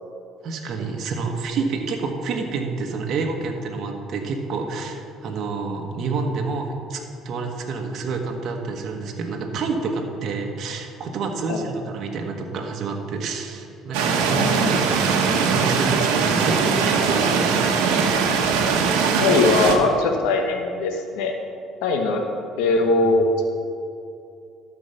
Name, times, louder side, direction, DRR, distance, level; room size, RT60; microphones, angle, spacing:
voice 1, 0.4-18.1 23.0-23.1, right 4 dB, 60° right, 2 dB, 1.2 m, -28 dB
sound 1, 13.9-19.8, right 5 dB, 85° right, 1.1 m, -21 dB
voice 2, 14.3-14.8 19.2-21.3 21.8-22.2 22.6-23.5, left 3 dB, 85° left, 4 dB, 0.9 m, -21 dB
12.5 x 4.7 x 6.6 m, 2.5 s
supercardioid pair, 85°, 0 cm